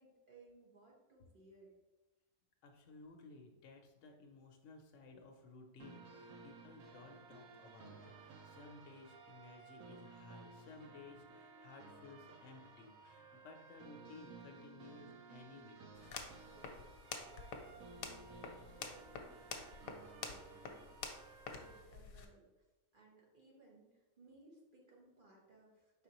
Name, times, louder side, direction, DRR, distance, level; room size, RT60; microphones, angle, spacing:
voice 1, 0.0-1.7 16.5-16.8 17.2-22.4 22.9-26.0, right 3 dB, 40° right, -3 dB, 1.1 m, -63 dB
voice 2, 2.6-15.8, left 3 dB, 65° left, 2 dB, 0.8 m, -57 dB
sound 1, 5.8-21.8, right 4 dB, 85° right, 1.1 m, -57 dB
sound 2, 15.9-22.3, left 5 dB, 90° left, 1.1 m, -49 dB
4.8 x 3.7 x 2.9 m, 1.1 s
omnidirectional pair, 1.4 m